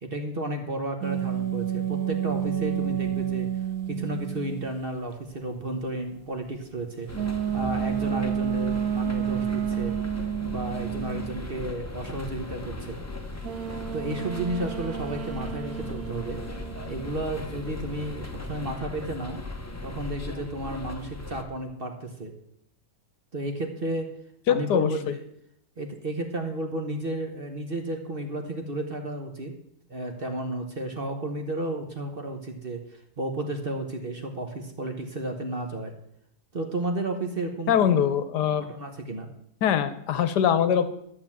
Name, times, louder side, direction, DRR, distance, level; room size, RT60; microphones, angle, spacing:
voice 1, 0.0-3.6 3.9-7.1 7.5-10.0 10.4-13.0 13.9-16.4 16.9-19.4 19.8-22.3 23.3-24.1 24.5-25.2 25.8-29.5 29.9-35.9 36.5-38.0 38.6-39.3, right 1 dB, 35° right, 4 dB, 1.2 m, -32 dB
sound 1, 1.0-4.8 7.1-11.5 13.4-17.2, right 9 dB, 65° right, 1.1 m, -30 dB
sound 2, 7.1-21.4, left 2 dB, 15° left, 0.6 m, -38 dB
voice 2, 24.5-24.9 37.7-38.7 39.6-40.9, left 9 dB, 70° left, 12 dB, 1.3 m, -22 dB
11.5 x 6.9 x 7.3 m, 0.74 s
omnidirectional pair, 1.9 m